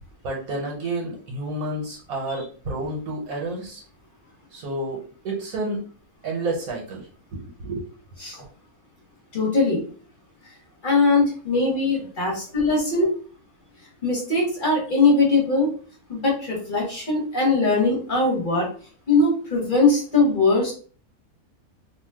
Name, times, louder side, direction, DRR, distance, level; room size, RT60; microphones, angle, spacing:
voice 1, 0.2-3.8 4.5-5.8 6.2-7.1 7.6-7.9, right 2 dB, 75° right, -1 dB, 1.2 m, -30 dB
voice 2, 9.3-9.8 10.8-13.1 14.0-15.7 16.1-18.7 19.1-20.7, left 3 dB, 40° left, -2 dB, 1.0 m, -21 dB
2.6 x 2.2 x 3.4 m, 0.41 s
omnidirectional pair, 1.6 m